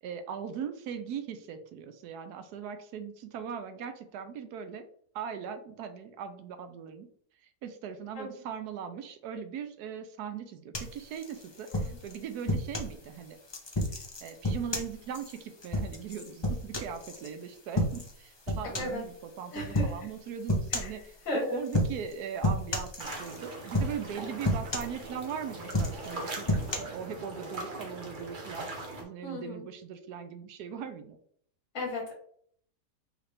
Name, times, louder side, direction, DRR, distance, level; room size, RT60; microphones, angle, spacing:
voice 1, 0.0-4.8 5.1-7.1 7.6-13.4 14.2-28.7 29.0-31.2, right 7 dB, 75° right, 8 dB, 1.2 m, -39 dB
sound 1, 10.7-12.9 13.5-17.3 17.7-18.2 18.5-19.0 19.7-20.0 20.5-21.0 21.7-22.1 22.4-23.4 23.7-24.1 24.4-25.3 25.6-26.8, left 1 dB, 30° left, 0.5 m, -31 dB
voice 2, 19.5-19.9 20.7-20.9 21.3-21.6 29.2-29.6 31.7-32.1, left 1 dB, 50° left, -1 dB, 1.5 m, -34 dB
sound 2, 23.0-29.0, right 2 dB, 40° right, 0.8 m, -41 dB
4.8 x 3.3 x 3.3 m, 0.62 s
omnidirectional pair, 1.7 m